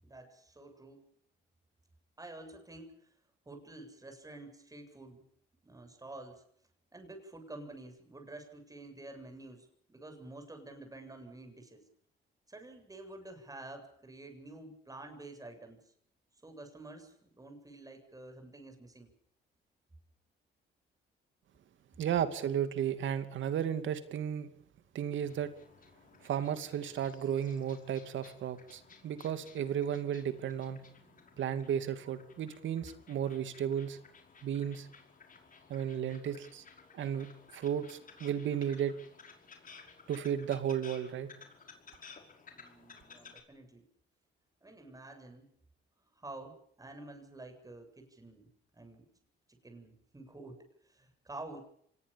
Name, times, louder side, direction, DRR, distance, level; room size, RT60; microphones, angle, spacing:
voice 1, 0.0-1.0 2.2-3.1 3.5-5.2 5.6-6.4 6.9-11.9 12.5-15.8 16.4-19.1 42.5-43.8 44.6-45.5 46.2-49.1 49.5-51.6, right 2 dB, 15° right, 6 dB, 7.8 m, -49 dB
voice 2, 22.0-24.5 24.9-25.5 26.2-30.8 31.4-34.0 34.4-34.9 35.7-36.6 36.9-37.3 37.5-39.0 40.1-41.3, right 9 dB, 75° right, 10 dB, 2.7 m, -34 dB
sound 1, 25.2-43.4, left 5 dB, 45° left, 5.5 m, -57 dB
25.0 x 20.5 x 7.2 m, 0.65 s
cardioid pair, 90°, 20 cm